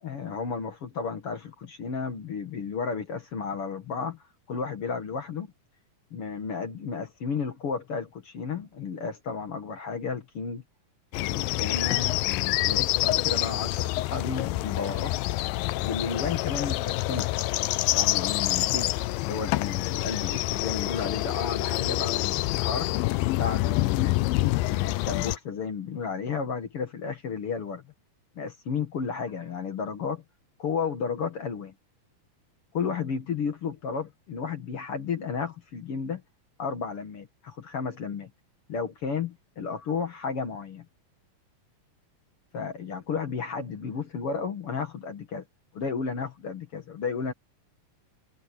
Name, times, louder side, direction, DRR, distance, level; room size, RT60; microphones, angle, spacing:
voice 1, 0.0-4.2 4.5-5.5 6.1-10.6 11.1-15.1 15.8-17.3 17.9-22.9 23.4-24.2 24.6-27.8 28.4-30.2 30.6-31.7 32.7-36.2 36.6-38.3 38.7-40.9 42.5-45.4 45.7-47.3, left 5 dB, 50° left, 2.1 m, -33 dB
sound 1, 11.1-25.4, left 18 dB, 80° left, 2.4 m, -27 dB
omnidirectional pair, 4.1 m